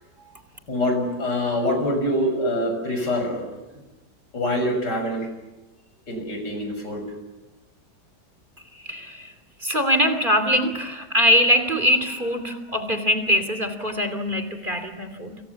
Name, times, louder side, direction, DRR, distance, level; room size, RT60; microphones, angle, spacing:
voice 1, 0.7-3.8 4.3-5.3 6.1-7.0, left 1 dB, 70° left, 5 dB, 7.3 m, -25 dB
voice 2, 8.8-9.3 9.6-15.3, equal, 30° right, 9 dB, 3.1 m, -22 dB
29.0 x 27.5 x 7.1 m, 1.1 s
omnidirectional pair, 1.9 m